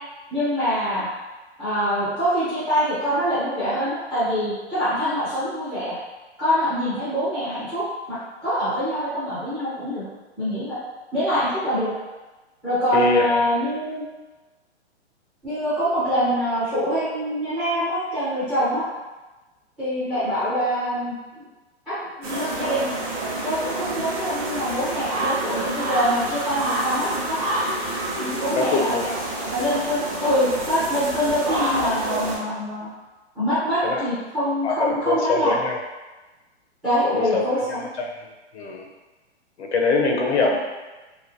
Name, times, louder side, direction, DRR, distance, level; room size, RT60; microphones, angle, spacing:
voice 1, 0.3-1.1 1.6-5.9 6.4-8.2 8.4-10.0 10.4-10.8 11.1-11.9 12.6-14.0 15.4-18.9 19.8-21.5 21.9-22.9 23.4-27.4 28.2-29.0 29.5-32.9 33.3-35.5 36.8-37.8, equal, 5° right, -15 dB, 0.4 m, -24 dB
voice 2, 12.9-13.4 28.6-29.2 33.8-34.0 34.6-35.8 37.0-38.1 38.5-38.9 39.6-40.6, left 3 dB, 75° left, 1 dB, 0.7 m, -23 dB
sound 1, 22.2-32.4, right 1 dB, 30° right, 0.7 m, -28 dB
3.0 x 2.6 x 2.5 m, 1.2 s
hypercardioid pair, 160°, 34 cm